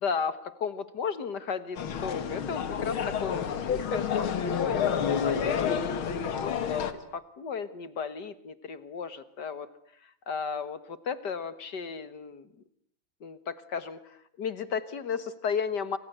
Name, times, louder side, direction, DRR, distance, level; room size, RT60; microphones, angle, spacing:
voice 1, 0.0-5.0 5.2-9.7 10.3-12.4 13.2-14.0 14.4-16.0, left 6 dB, 55° left, 13 dB, 2.0 m, -34 dB
sound 1, 1.8-6.9, left 7 dB, 90° left, 2.5 m, -29 dB
28.0 x 25.5 x 8.0 m, 0.66 s
omnidirectional pair, 2.2 m